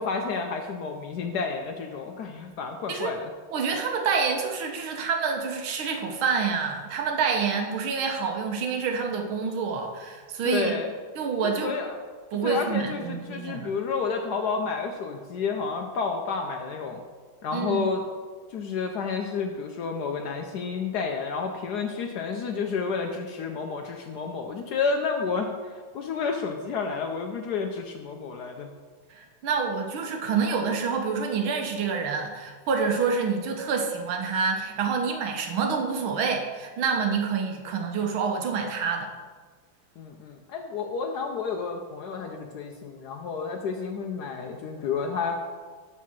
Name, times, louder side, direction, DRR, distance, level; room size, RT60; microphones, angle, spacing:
voice 1, 0.0-3.3 10.4-10.9 11.4-11.9 12.4-17.0 17.4-18.0 18.5-28.7 40.0-45.4, left 5 dB, 75° left, 3 dB, 0.9 m, -30 dB
voice 2, 3.5-10.7 11.2-11.8 12.3-13.7 17.5-17.8 29.1-39.1, right 5 dB, 75° right, 4 dB, 1.6 m, -27 dB
6.7 x 4.6 x 6.0 m, 1.5 s
omnidirectional pair, 2.3 m